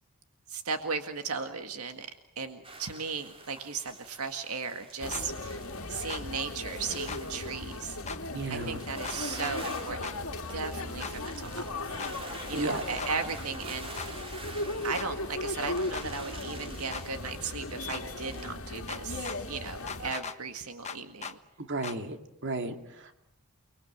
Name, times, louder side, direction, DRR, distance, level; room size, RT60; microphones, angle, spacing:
voice 1, 0.5-2.1 2.4-5.6 5.9-8.0 8.5-10.1 10.5-11.7 12.5-14.2 14.8-21.4, right 5 dB, 80° right, 6 dB, 1.9 m, -36 dB
sound 1, 2.6-18.5, right 2 dB, 25° right, 3.1 m, -48 dB
sound 2, 5.0-20.1, left 2 dB, 65° left, 2.1 m, -37 dB
sound 3, 5.1-5.2 6.1-6.2 7.1-7.2 8.1-8.2 9.0-9.6 10.0-10.2 11.0-11.1 12.0-12.1 13.0-13.1 14.0-14.1 14.9-15.1 15.9-16.1 16.9-17.1 17.9-18.0 18.9-19.4 19.9-20.4 20.8-21.4 21.8-22.0, left 6 dB, 30° left, 1.2 m, -38 dB
voice 2, 8.3-8.8 12.5-12.8 21.6-22.2 22.4-23.1, right 2 dB, 55° right, 6 dB, 2.6 m, -33 dB
29.5 x 22.0 x 8.0 m, 0.79 s
head